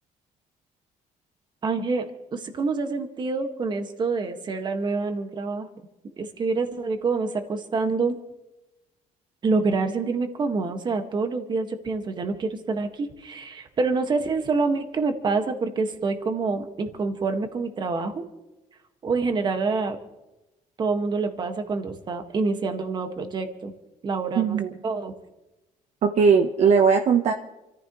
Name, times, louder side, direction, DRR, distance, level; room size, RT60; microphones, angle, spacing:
voice 1, 1.6-5.7 6.2-8.2 9.4-18.2 19.0-20.0 20.8-23.7 24.0-25.1, right 4 dB, 35° right, 6 dB, 1.8 m, -27 dB
voice 2, 24.4-24.7 26.0-27.3, right 6 dB, 50° right, 4 dB, 1.0 m, -19 dB
28.5 x 14.5 x 3.2 m, 0.99 s
cardioid pair, 155°, 14 cm